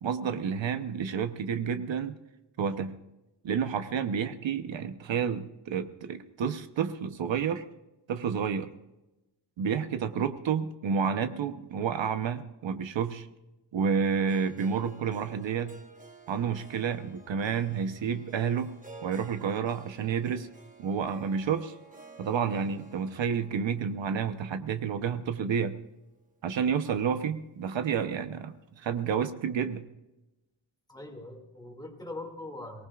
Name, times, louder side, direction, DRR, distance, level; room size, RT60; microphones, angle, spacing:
voice 1, 0.0-2.2 2.6-2.9 3.4-7.6 8.1-8.7 9.6-13.3 13.7-15.7 16.3-18.7 19.0-20.5 20.8-21.7 22.2-25.7 26.4-29.8, right 7 dB, 75° right, 9 dB, 1.0 m, -30 dB
Harp, 14.3-26.4, right 4 dB, 15° right, 1.4 m, -53 dB
voice 2, 30.9-32.9, left 2 dB, 10° left, 1 dB, 2.3 m, -42 dB
23.5 x 19.0 x 2.4 m, 0.98 s
wide cardioid pair, 175°, 46 cm